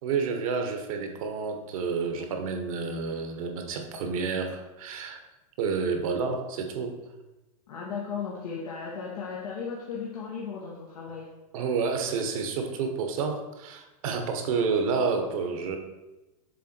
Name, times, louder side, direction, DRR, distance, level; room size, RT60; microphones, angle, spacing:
voice 1, 0.0-5.2 5.6-6.9 11.5-15.8, right 5 dB, 65° right, 4 dB, 1.2 m, -29 dB
voice 2, 7.7-11.3, left 6 dB, 80° left, -4 dB, 1.3 m, -36 dB
7.0 x 3.7 x 4.4 m, 1.0 s
hypercardioid pair, 125°, 19 cm